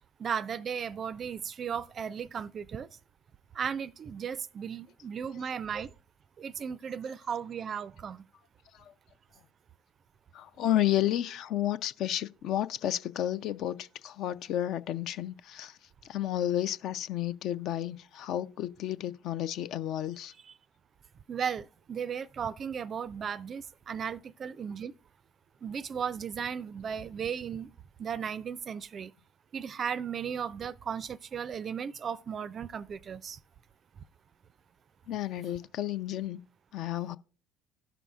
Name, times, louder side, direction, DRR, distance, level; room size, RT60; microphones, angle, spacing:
voice 1, 0.2-2.9 3.5-5.9 6.4-8.3 20.4-20.5 21.3-24.9 25.6-27.7 28.0-29.1 29.5-33.4, right 7 dB, 40° right, 0.3 m, -36 dB
voice 2, 10.3-15.8 16.1-20.3 35.1-36.4 36.7-37.2, left 12 dB, 55° left, 0.3 m, -31 dB
16.5 x 5.9 x 2.3 m
figure-of-eight pair, 60°, 0 cm